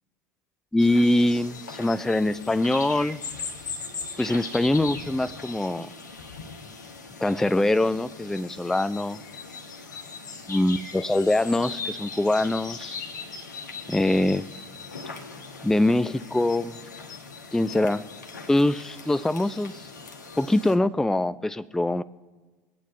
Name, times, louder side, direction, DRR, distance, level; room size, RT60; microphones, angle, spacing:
voice 1, 0.7-3.2 4.2-5.9 7.2-9.2 10.5-13.0 13.9-14.5 15.6-16.7 17.5-18.0 18.5-19.8 20.4-22.0, left 1 dB, 5° left, 15 dB, 0.4 m, -23 dB
sound 1, 0.8-20.8, left 4 dB, 80° left, 1.3 m, -39 dB
24.0 x 9.1 x 2.6 m, 1.3 s
figure-of-eight pair, 70°, 10 cm